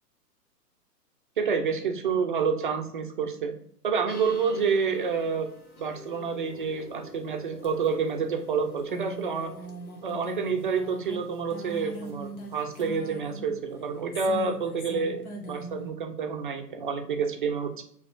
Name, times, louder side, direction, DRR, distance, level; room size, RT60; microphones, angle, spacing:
voice 1, 1.4-3.5 3.8-5.5 5.8-9.5 10.0-17.8, right 5 dB, 35° right, 5 dB, 0.4 m, -28 dB
sound 1, 4.1-15.9, equal, 60° left, 1.3 m, -42 dB
6.6 x 2.9 x 2.4 m, 0.67 s
figure-of-eight pair, 125°, 48 cm